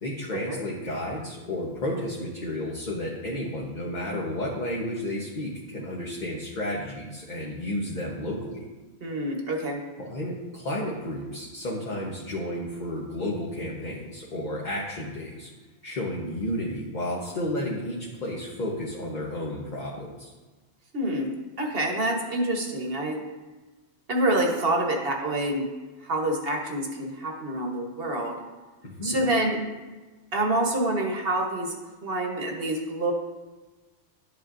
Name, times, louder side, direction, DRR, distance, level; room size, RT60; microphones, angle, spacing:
voice 1, 0.0-8.7 10.0-15.5 15.8-20.3 28.8-29.3, left 1 dB, 40° left, -3 dB, 1.1 m, -32 dB
voice 2, 9.0-9.8 20.9-21.3 21.6-23.2 24.1-25.7 26.0-28.4 29.0-29.6 30.3-31.7 32.0-33.1, right 1 dB, 55° right, 2 dB, 1.3 m, -27 dB
11.0 x 8.1 x 2.6 m, 1.3 s
omnidirectional pair, 1.2 m